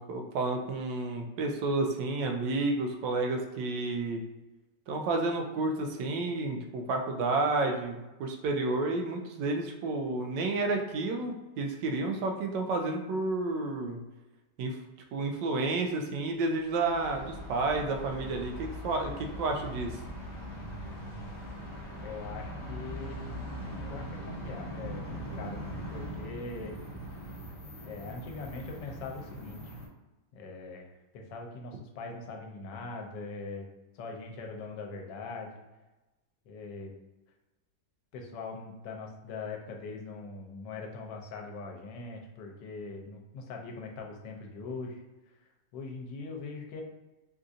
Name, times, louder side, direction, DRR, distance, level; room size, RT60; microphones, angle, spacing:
voice 1, 0.0-4.2 4.9-14.0 14.6-14.8 15.1-20.0, right 2 dB, 85° right, 3 dB, 1.2 m, -31 dB
sound 1, 16.6-29.9, equal, 35° left, 0.7 m, -41 dB
voice 2, 22.0-23.2 23.8-26.8 27.8-29.8 30.3-33.7 33.9-35.6 36.5-36.9 38.1-45.4 45.7-46.8, left 3 dB, 85° left, 2 dB, 1.3 m, -42 dB
3.8 x 2.6 x 2.4 m, 1.1 s
omnidirectional pair, 1.9 m